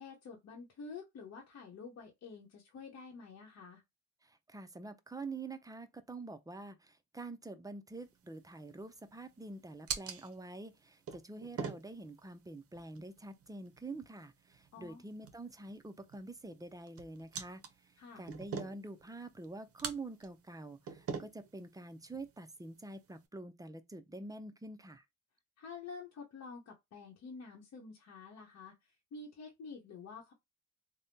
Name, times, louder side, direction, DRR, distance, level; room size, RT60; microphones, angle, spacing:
voice 1, 0.0-3.8 14.7-15.0 18.0-18.2 25.6-30.3, left 4 dB, 60° left, 0.9 m, -49 dB
voice 2, 4.2-17.6 18.2-25.0, right 2 dB, 10° right, 0.5 m, -46 dB
sound 1, 7.9-23.3, right 6 dB, 50° right, 0.7 m, -47 dB
3.4 x 2.1 x 2.7 m
cardioid pair, 90°, 30 cm